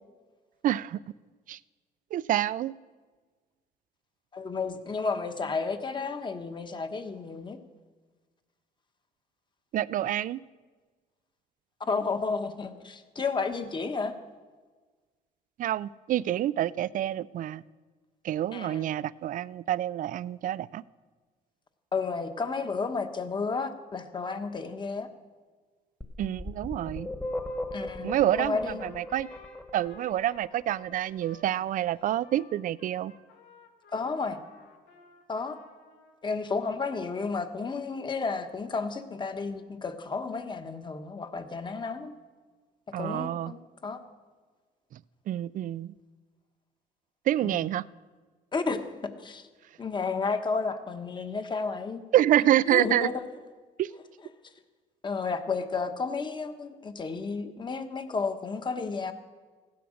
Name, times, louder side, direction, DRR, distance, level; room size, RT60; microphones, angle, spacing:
voice 1, 0.6-1.0 1.5-1.6 2.1-2.7 9.7-10.4 15.6-17.6 18.2-20.8 26.2-27.1 28.0-28.6 28.8-29.3 29.7-33.1 42.9-43.5 44.9-45.0 45.3-45.9 47.3-47.9 52.1-53.1 53.8-53.9, right 12 dB, 50° right, 19 dB, 0.4 m, -27 dB
voice 2, 4.3-7.6 11.8-14.1 18.5-18.9 21.9-25.1 27.7-28.9 33.9-34.4 35.3-35.6 36.2-42.1 43.0-44.0 47.4-47.7 48.5-49.5 49.8-52.0 52.7-53.2 54.4-54.5 55.0-59.1, left 4 dB, 25° left, 8 dB, 1.3 m, -32 dB
sound 1, 26.0-30.9, left 1 dB, 10° left, 1.3 m, -37 dB
Trumpet, 28.3-28.5 28.8-36.2, left 4 dB, 75° left, 2.1 m, -56 dB
16.0 x 10.0 x 6.5 m, 1.4 s
cardioid pair, 110°, 17 cm